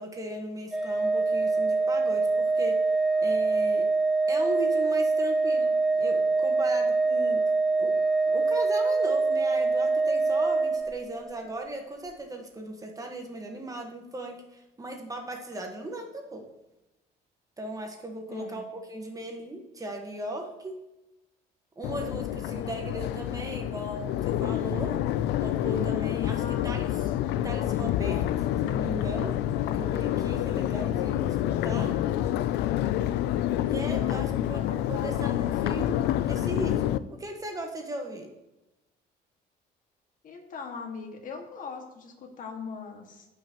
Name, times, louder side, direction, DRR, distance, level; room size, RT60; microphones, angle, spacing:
voice 1, 0.0-2.8 3.2-3.9 4.3-7.4 7.7-8.0 8.2-16.4 17.6-20.8 21.8-25.0 25.4-26.9 27.4-29.4 29.7-32.0 33.6-38.3, right 1 dB, 20° right, 3 dB, 1.4 m, -37 dB
Organ, 0.7-11.4, right 3 dB, 5° right, 0.5 m, -24 dB
voice 2, 18.3-18.7 25.8-27.1 34.0-35.3 40.2-43.3, left 5 dB, 50° left, 2 dB, 1.8 m, -41 dB
Crowd, 21.8-37.0, left 12 dB, 80° left, 0.4 m, -28 dB
15.0 x 5.8 x 3.0 m, 0.98 s
cardioid pair, 110°, 17 cm